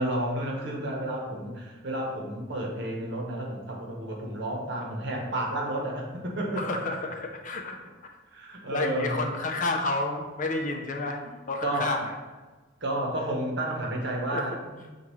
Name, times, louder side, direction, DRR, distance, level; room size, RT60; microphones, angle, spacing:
voice 1, 0.0-6.8 8.3-9.2 11.2-11.3 11.6-11.9 12.8-14.9, right 1 dB, 60° right, 0 dB, 0.9 m, -31 dB
voice 2, 6.6-7.8 8.7-11.2 11.5-12.2 14.3-14.4, left 2 dB, 40° left, 3 dB, 0.5 m, -30 dB
6.9 x 2.4 x 3.1 m, 1.3 s
head